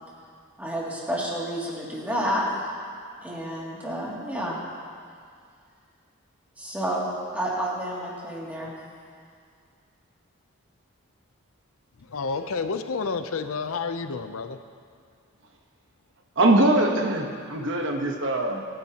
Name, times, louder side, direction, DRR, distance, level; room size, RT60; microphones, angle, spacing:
voice 1, 0.6-2.6 3.2-4.6 6.6-7.1 7.3-8.7, equal, 5° right, -6 dB, 2.5 m, -30 dB
voice 2, 12.0-14.6, left 4 dB, 75° left, 9 dB, 0.6 m, -30 dB
voice 3, 16.4-18.6, right 1 dB, 55° right, 2 dB, 1.1 m, -22 dB
25.5 x 10.5 x 2.9 m, 2.2 s
head